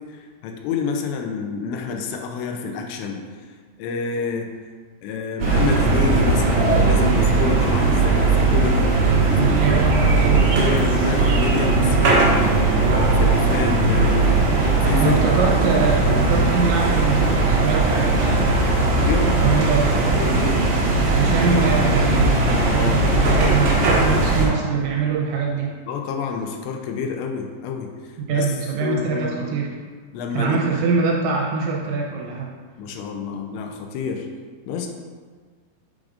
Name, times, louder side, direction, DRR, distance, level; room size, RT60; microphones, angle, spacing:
voice 1, 0.1-3.2 3.8-4.5 5.0-8.9 9.4-9.8 10.2-12.7 13.2-14.5 14.8-15.2 16.1-16.3 18.7-19.4 20.1-20.7 22.6-23.8 25.9-27.9 28.3-28.5 28.8-29.5 30.1-30.6 32.8-34.3 34.7-34.9, left 5 dB, 80° left, 3 dB, 2.6 m, -28 dB
sound 1, 5.4-24.5, right 3 dB, 65° right, 2.3 m, -18 dB
voice 2, 9.2-10.5 15.0-20.0 21.1-22.3 22.7-25.7 28.2-29.7 30.3-32.5, right 4 dB, 80° right, -2 dB, 3.1 m, -24 dB
9.4 x 4.9 x 2.5 m, 1.5 s
omnidirectional pair, 5.5 m